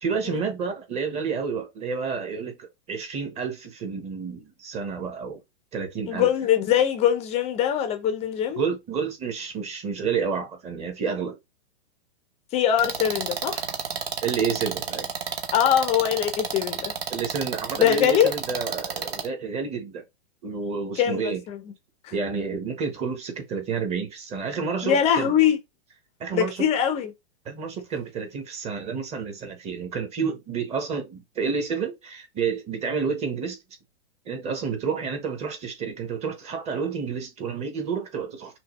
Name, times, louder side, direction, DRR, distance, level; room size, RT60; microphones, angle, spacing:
voice 1, 0.0-5.4 5.7-6.3 8.5-11.4 14.2-15.1 17.1-20.0 20.4-21.4 22.1-25.3 26.2-26.6 27.4-33.6 34.2-38.6, right 5 dB, 20° right, 1.1 m, -30 dB
voice 2, 6.1-8.6 12.5-13.6 15.5-16.9 17.8-18.3 21.0-21.6 22.0-22.1 24.8-25.6 26.3-27.1, left 10 dB, 20° left, 0.6 m, -22 dB
Drilling Fast, 12.8-19.3, right 7 dB, 65° right, 1.1 m, -31 dB
5.7 x 2.3 x 3.0 m
hypercardioid pair, 140°, 32 cm